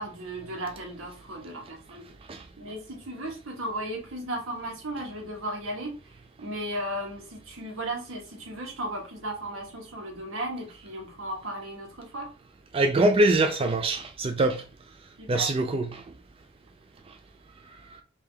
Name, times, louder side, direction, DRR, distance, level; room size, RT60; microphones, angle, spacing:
voice 1, 0.0-2.1 2.6-6.1 6.4-12.3 15.2-15.5, right 1 dB, 85° right, 1.4 m, -35 dB
voice 2, 12.7-14.6 15.3-16.0, right 2 dB, 30° right, 0.4 m, -23 dB
3.5 x 2.7 x 3.4 m
head